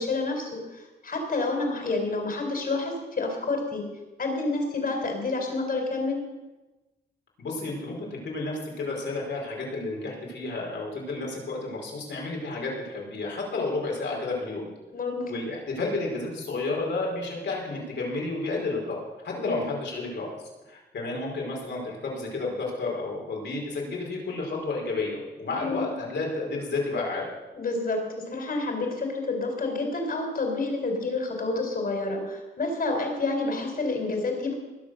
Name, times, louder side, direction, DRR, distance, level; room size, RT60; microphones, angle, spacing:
voice 1, 0.0-3.8 4.2-6.2 14.9-15.3 19.3-19.6 25.6-25.8 27.5-34.5, left 3 dB, 50° left, 3 dB, 4.2 m, -29 dB
voice 2, 7.4-14.7 15.3-20.4 20.7-27.2, left 3 dB, 75° left, -1 dB, 5.0 m, -31 dB
20.0 x 7.4 x 6.5 m, 1.1 s
cardioid pair, 85°, 19 cm